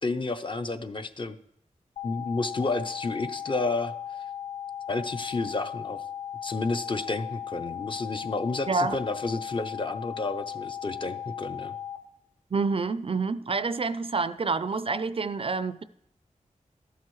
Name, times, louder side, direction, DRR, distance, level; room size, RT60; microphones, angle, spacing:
voice 1, 0.0-1.4 2.0-3.9 4.9-6.0 6.4-11.7, left 3 dB, 35° left, 8 dB, 0.6 m, -31 dB
sound 1, 2.0-12.0, left 9 dB, 85° left, 0.9 m, -37 dB
voice 2, 8.7-9.0 12.5-15.8, right 4 dB, 45° right, 14 dB, 0.4 m, -28 dB
13.5 x 12.0 x 3.1 m, 0.75 s
wide cardioid pair, 85°, 14 cm